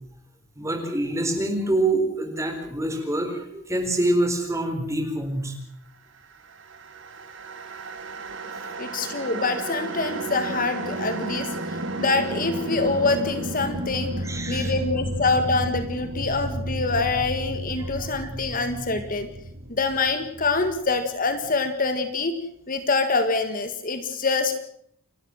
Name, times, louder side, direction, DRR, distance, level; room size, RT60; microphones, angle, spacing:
voice 1, 0.6-5.6 11.9-12.0 14.2-14.7 17.8-18.1 18.5-18.6, right 1 dB, 15° right, 4 dB, 4.3 m, -26 dB
sound 1, 6.4-21.7, right 1 dB, 60° right, 2.5 m, -33 dB
voice 2, 8.8-14.1 14.5-19.3 19.7-22.3 22.7-24.5, left 3 dB, 40° left, 9 dB, 1.7 m, -25 dB
29.0 x 13.0 x 7.5 m, 0.69 s
head